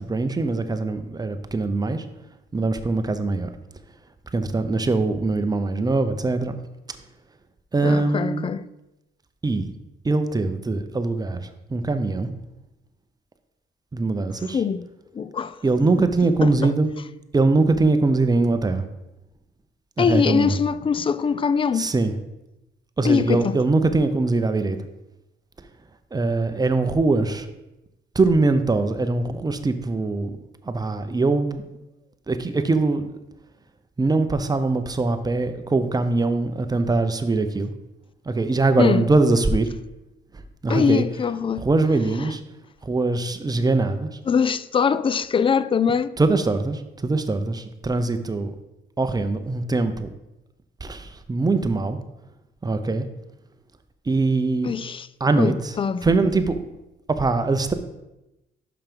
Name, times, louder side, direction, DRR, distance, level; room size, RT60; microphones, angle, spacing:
voice 1, 0.0-2.0 2.5-3.5 4.3-6.5 7.7-8.4 9.4-9.7 10.0-12.3 13.9-14.6 15.6-16.9 17.3-18.9 20.0-20.6 21.7-22.1 23.0-24.8 26.1-27.5 28.1-30.3 30.6-31.6 32.3-33.1 34.0-37.7 38.3-39.7 40.6-41.0 41.6-42.4 42.8-44.1 46.2-48.5 49.0-50.1 50.8-52.0 52.6-53.1 54.1-54.7 55.2-55.7 56.0-56.7 57.1-57.7, right 3 dB, 20° right, 0.7 m, -22 dB
voice 2, 7.8-8.6 14.5-14.9 15.1-15.6 16.4-16.7 20.0-21.9 23.0-23.6 38.8-39.0 40.7-41.7 44.3-46.1 54.6-55.1 55.4-56.1, left 6 dB, 25° left, 0.3 m, -22 dB
5.9 x 5.5 x 5.3 m
cardioid pair, 90°, 20 cm